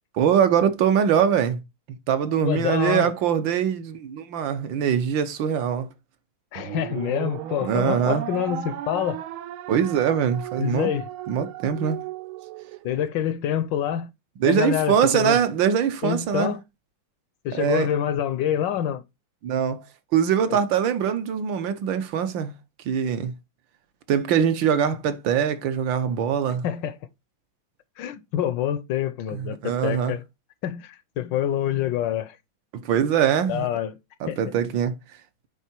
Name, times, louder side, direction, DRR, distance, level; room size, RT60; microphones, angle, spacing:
voice 1, 0.2-1.6 2.1-5.9 7.6-8.2 9.7-10.9 11.3-12.0 14.4-16.5 17.5-17.9 19.4-19.8 20.1-22.5 22.8-23.3 24.1-26.6 29.3-30.2 32.7-33.7 34.2-34.9, right 8 dB, 70° right, 1.5 m, -23 dB
voice 2, 2.4-3.1 6.5-9.2 10.6-11.1 12.8-14.1 14.4-15.4 16.0-16.6 17.4-19.0 20.5-20.6 26.6-27.0 28.0-30.2 30.6-32.4 33.5-34.0 34.3-34.4, left 10 dB, 75° left, 1.2 m, -26 dB
sound 1, 6.6-13.1, right 12 dB, 85° right, 1.5 m, -35 dB
9.1 x 3.7 x 4.4 m
omnidirectional pair, 2.2 m